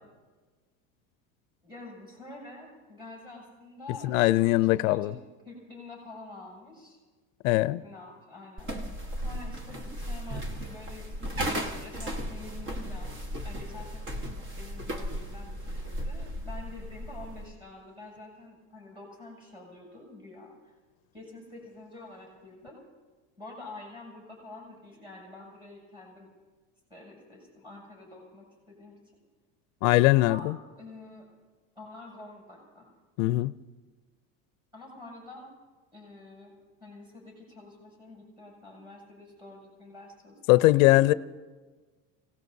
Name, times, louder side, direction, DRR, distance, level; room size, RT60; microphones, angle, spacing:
voice 1, 1.6-5.1 5.5-7.0 7.8-8.8 9.2-20.8 21.1-22.8 23.4-26.3 26.9-29.2 30.2-30.5 30.8-31.3 31.8-32.9 34.7-35.5 35.9-36.5 36.8-41.2, left 2 dB, 10° right, 7.1 m, -47 dB
voice 2, 4.0-5.1 7.4-7.8 29.8-30.6 33.2-33.5 40.5-41.1, left 18 dB, 80° left, 0.6 m, -21 dB
sound 1, 8.6-17.5, equal, 30° right, 1.5 m, -35 dB
29.5 x 18.0 x 2.7 m
supercardioid pair, 145°, 40 cm